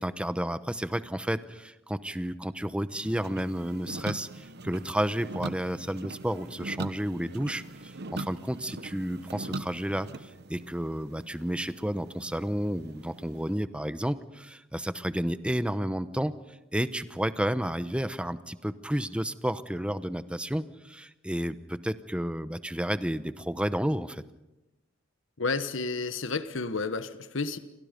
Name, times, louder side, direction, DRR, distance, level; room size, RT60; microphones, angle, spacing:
voice 1, 0.0-16.3 16.7-24.2, equal, 5° right, 12 dB, 0.9 m, -31 dB
sound 1, 2.9-13.6, right 2 dB, 55° right, 1.0 m, -41 dB
voice 2, 25.4-27.6, left 3 dB, 65° left, 11 dB, 1.3 m, -31 dB
29.5 x 25.5 x 5.2 m, 0.96 s
head